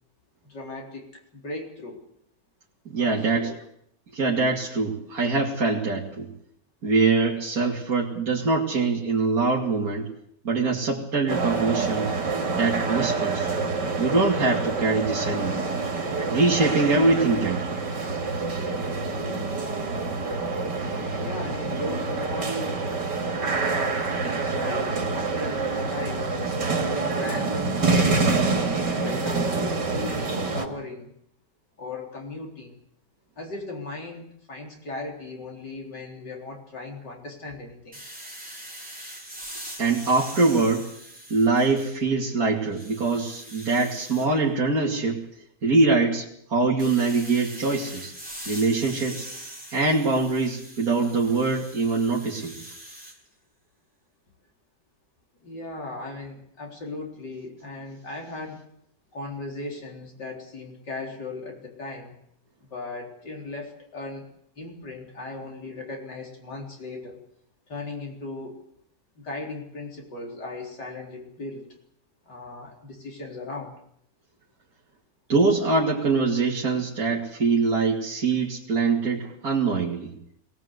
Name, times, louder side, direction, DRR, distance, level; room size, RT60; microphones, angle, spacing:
voice 1, 0.4-2.0 3.0-3.6 21.2-22.8 23.4-26.3 26.7-28.6 29.0-31.1 31.8-32.8 33.4-38.0 55.4-58.6 59.1-62.1 62.6-64.3 64.6-67.2 67.7-68.6 69.2-71.8 72.3-73.7, left 2 dB, 85° left, 0 dB, 4.6 m, -37 dB
voice 2, 2.9-3.5 4.1-6.3 6.8-10.1 10.4-12.1 12.6-13.5 14.0-15.6 16.3-17.8 39.8-40.9 41.3-45.2 45.6-48.1 48.5-49.3 49.7-52.6 75.3-80.1, right 3 dB, 60° right, -4 dB, 3.1 m, -23 dB
sound 1, 11.3-30.7, right 3 dB, 85° right, 3.1 m, -27 dB
sound 2, 37.9-42.2 42.6-44.3 46.8-53.2, right 1 dB, 5° right, 4.1 m, -42 dB
22.0 x 17.5 x 8.1 m, 0.70 s
omnidirectional pair, 1.8 m